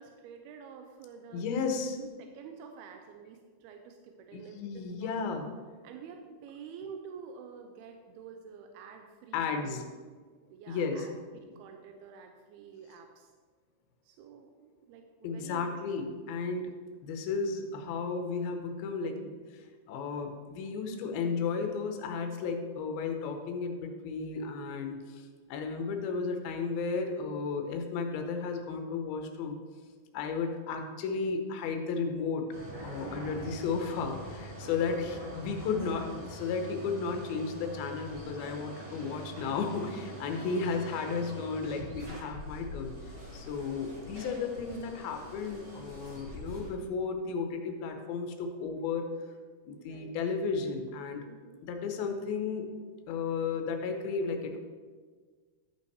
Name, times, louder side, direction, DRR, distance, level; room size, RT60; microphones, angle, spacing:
voice 1, 0.0-1.6 2.0-5.2 5.8-9.9 10.5-13.3 14.0-15.8 19.6-19.7 33.0-33.1 49.7-50.2 51.3-51.6, right 6 dB, 85° right, 4 dB, 2.6 m, -49 dB
voice 2, 1.3-2.0 4.3-5.5 9.3-9.8 10.7-11.1 15.2-16.7 17.0-29.6 30.1-32.4 32.8-49.0 49.7-51.2 51.6-52.7 53.1-54.6, left 5 dB, 80° left, 5 dB, 2.7 m, -34 dB
sound 1, 32.5-46.7, right 1 dB, 30° right, 2.7 m, -44 dB
12.0 x 5.6 x 4.7 m, 1.5 s
omnidirectional pair, 4.4 m